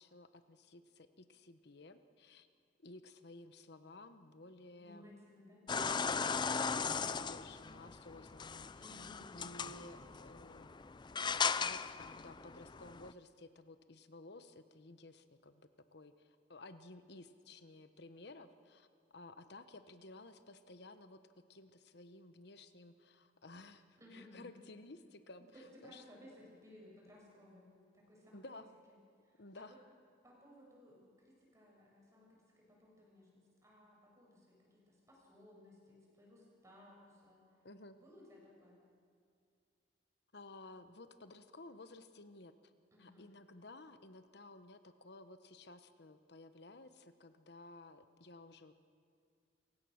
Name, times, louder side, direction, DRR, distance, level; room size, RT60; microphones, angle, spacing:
voice 1, 0.0-2.5 2.8-5.1 5.9-10.8 11.5-21.2 21.5-26.0 27.8-28.0 28.3-28.7 29.4-29.8 37.6-38.0 40.3-42.7 43.0-48.8, left 2 dB, 65° left, 10 dB, 1.1 m, -55 dB
voice 2, 4.8-5.6 8.8-9.4 24.0-24.5 25.5-28.4 29.2-29.8 30.2-37.4 37.9-38.8 42.9-43.3, left 1 dB, 15° right, -3 dB, 6.6 m, -60 dB
sound 1, 5.7-13.1, left 6 dB, 25° left, 0.4 m, -38 dB
28.0 x 16.0 x 6.5 m, 2.2 s
head